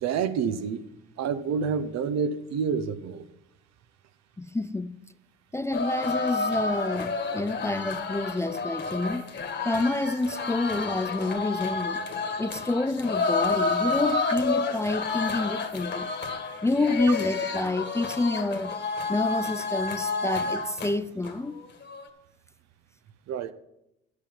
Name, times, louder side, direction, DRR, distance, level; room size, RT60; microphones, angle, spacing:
voice 1, 0.0-0.8 1.2-3.2 23.3-23.5, right 6 dB, 65° right, 0.9 m, -28 dB
voice 2, 4.4-5.0 5.5-9.2 9.6-12.0 12.4-16.1 16.6-18.7 19.1-21.6, left 2 dB, 10° left, 0.4 m, -28 dB
sound 1, 5.7-20.9 21.2-21.3 21.6-22.1, left 4 dB, 35° left, 1.8 m, -30 dB
10.5 x 8.2 x 5.7 m
supercardioid pair, 70°, 30 cm